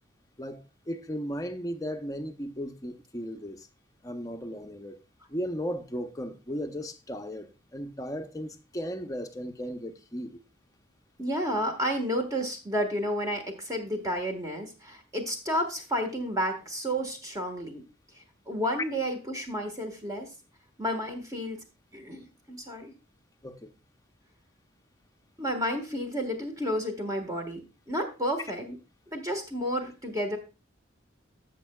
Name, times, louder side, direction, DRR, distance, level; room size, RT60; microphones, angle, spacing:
voice 1, 0.4-3.7 4.0-5.0 5.3-10.4 23.4-23.7, equal, 20° left, 0.7 m, -36 dB
voice 2, 11.2-17.8 18.1-20.3 20.8-21.6 21.9-22.9 25.4-27.6 27.9-28.8 29.1-30.4, equal, 20° right, 1.5 m, -31 dB
14.5 x 6.6 x 2.3 m
head